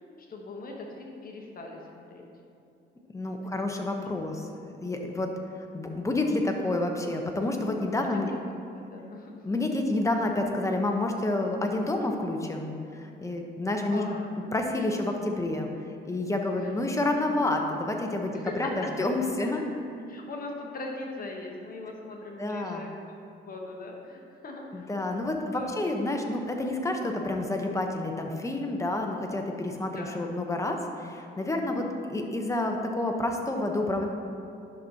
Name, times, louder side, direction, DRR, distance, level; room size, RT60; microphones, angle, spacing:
voice 1, 0.0-2.3 3.5-3.7 8.1-8.2 8.7-9.3 13.9-14.3 16.6-16.7 18.3-18.7 20.1-23.2 23.5-25.2 25.5-25.7 29.9-30.2, left 2 dB, 45° left, 0 dB, 1.1 m, -40 dB
voice 2, 3.1-4.5 4.8-5.3 5.7-8.3 9.4-14.0 14.5-15.7 16.0-19.6 22.4-22.9 24.7-34.1, left 2 dB, 15° left, 2 dB, 0.9 m, -29 dB
10.5 x 6.0 x 2.8 m, 2.6 s
cardioid pair, 90°, 20 cm